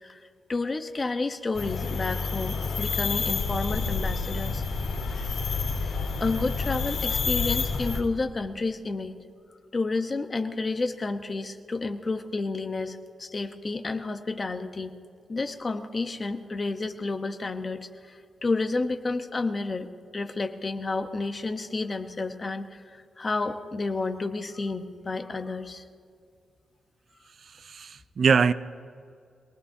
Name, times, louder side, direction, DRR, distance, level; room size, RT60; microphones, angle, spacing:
voice 1, 0.0-4.6 5.8-9.1 9.7-14.9 15.3-19.9 20.1-25.8, left 3 dB, 30° left, 7 dB, 1.0 m, -31 dB
sound 1, 1.6-8.0, left 4 dB, 80° left, 3.2 m, -29 dB
voice 2, 27.4-28.5, right 5 dB, 50° right, 14 dB, 0.4 m, -23 dB
26.0 x 19.0 x 2.8 m, 2.3 s
wide cardioid pair, 135°, 0 cm